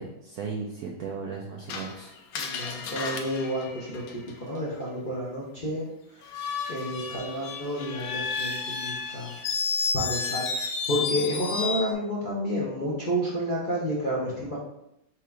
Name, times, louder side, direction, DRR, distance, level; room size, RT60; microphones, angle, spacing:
voice 1, 0.0-2.1, right 5 dB, 75° right, 0 dB, 0.8 m, -36 dB
Screech, 1.7-4.6 6.2-11.9, left 5 dB, 80° left, 0.8 m, -32 dB
voice 2, 2.3-6.4 6.7-9.4 9.9-14.6, equal, 45° left, -6 dB, 0.6 m, -30 dB
4.5 x 2.5 x 4.5 m, 0.81 s
omnidirectional pair, 2.1 m